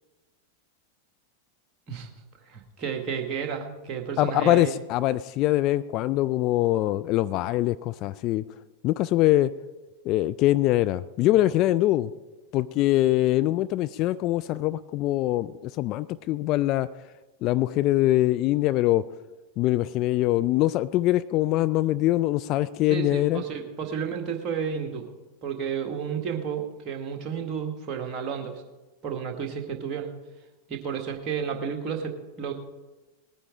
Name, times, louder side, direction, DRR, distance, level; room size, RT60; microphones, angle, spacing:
voice 1, 2.5-4.7 22.9-25.1 25.4-28.6 29.0-30.1 30.7-32.5, right 7 dB, 30° right, 3 dB, 1.9 m, -32 dB
voice 2, 4.2-8.4 8.8-9.5 10.1-12.1 12.5-16.9 17.4-19.0 19.6-23.4, left 15 dB, 40° left, 14 dB, 0.4 m, -23 dB
19.5 x 9.6 x 3.7 m, 1.2 s
figure-of-eight pair, 90°, 0 cm